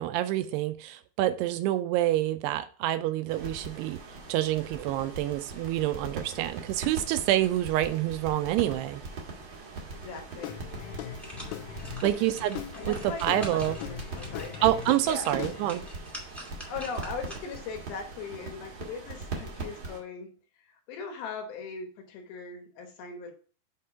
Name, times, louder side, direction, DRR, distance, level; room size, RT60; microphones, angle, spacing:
voice 1, 0.0-4.0 4.3-9.0 12.0-12.6 12.9-13.8 14.6-15.8, right 14 dB, 85° right, 2.5 m, -27 dB
sound 1, 3.3-20.0, right 3 dB, 65° right, 1.3 m, -41 dB
voice 2, 9.9-11.0 12.7-14.7 15.0-15.4 16.7-20.3 20.6-23.3, left 5 dB, 70° left, 2.8 m, -40 dB
Guitar / Drum, 10.4-16.0, left 10 dB, 85° left, 2.8 m, -40 dB
sound 2, 10.8-17.7 18.1-18.2, equal, ahead, 0.6 m, -46 dB
7.6 x 3.7 x 5.5 m
omnidirectional pair, 4.8 m